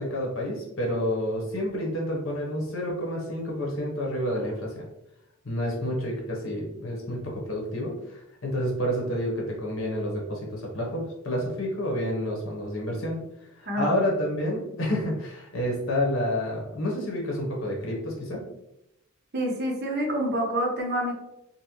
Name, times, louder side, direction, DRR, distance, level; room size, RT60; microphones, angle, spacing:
voice 1, 0.0-4.9 5.4-13.2 13.6-18.4, equal, 70° left, -1 dB, 1.0 m, -29 dB
voice 2, 19.3-21.1, equal, 50° right, -1 dB, 0.8 m, -27 dB
3.9 x 2.1 x 2.9 m, 0.87 s
head